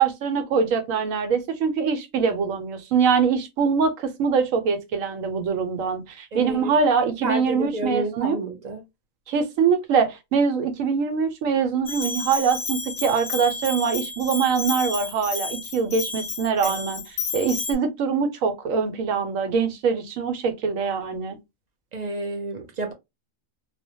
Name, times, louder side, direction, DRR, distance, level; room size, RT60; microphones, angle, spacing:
voice 1, 0.0-8.4 9.3-17.0 17.3-21.4, right 6 dB, 85° right, 1.1 m, -23 dB
voice 2, 6.3-6.7 7.2-8.8 16.6-16.8 21.9-22.9, right 1 dB, 55° right, 0.4 m, -30 dB
Bell, 11.9-17.7, left 4 dB, 60° left, 0.4 m, -31 dB
2.4 x 2.1 x 2.7 m
omnidirectional pair, 1.4 m